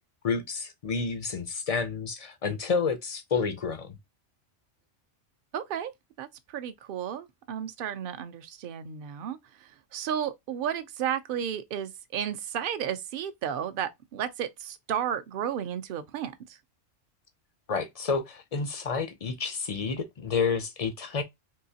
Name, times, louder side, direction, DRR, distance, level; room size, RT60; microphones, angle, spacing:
voice 1, 0.2-4.0 17.7-21.2, left 5 dB, 55° left, 0.4 m, -30 dB
voice 2, 5.5-5.9 6.2-16.6, right 9 dB, 60° right, 0.6 m, -33 dB
3.7 x 2.8 x 2.7 m
omnidirectional pair, 1.2 m